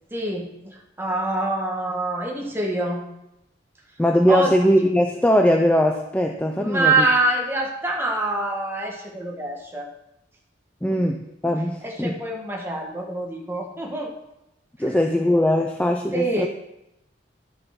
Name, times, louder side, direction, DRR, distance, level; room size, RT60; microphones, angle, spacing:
voice 1, 0.1-3.0 4.3-4.5 6.6-9.9 10.9-11.0 11.8-14.1 16.1-16.5, right 2 dB, 15° right, 0 dB, 1.6 m, -25 dB
voice 2, 4.0-7.1 10.8-12.2 14.8-16.5, equal, 5° left, 4 dB, 0.5 m, -20 dB
11.5 x 6.8 x 5.9 m, 0.87 s
head